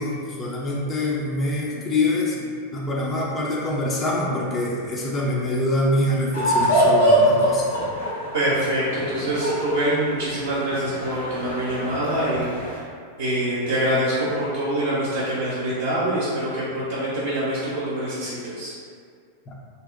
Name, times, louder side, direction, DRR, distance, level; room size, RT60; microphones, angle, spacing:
voice 1, 0.0-7.7 19.5-19.6, left 1 dB, 20° left, -4 dB, 0.4 m, -25 dB
sound 1, 6.3-12.8, equal, 70° left, 0.8 m, -23 dB
voice 2, 8.3-12.5 13.2-18.7, right 1 dB, 60° right, -10 dB, 0.5 m, -25 dB
2.6 x 2.0 x 2.4 m, 2.1 s
figure-of-eight pair, 90°, 0 cm